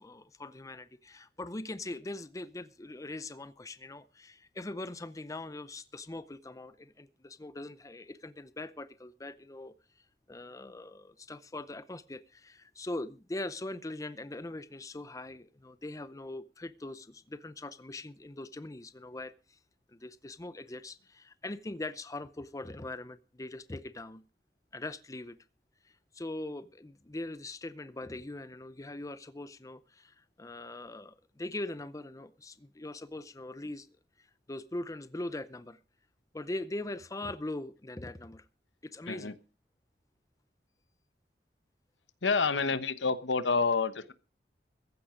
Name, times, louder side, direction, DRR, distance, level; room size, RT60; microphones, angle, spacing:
voice 1, 0.0-9.7 10.3-19.6 19.9-24.2 24.7-25.4 25.8-33.9 34.2-35.8 36.3-38.4 38.8-39.3 42.7-42.8, left 2 dB, 20° left, 0.6 m, -41 dB
voice 2, 42.2-44.1, left 4 dB, 85° left, 1.1 m, -28 dB
15.0 x 11.0 x 5.0 m
head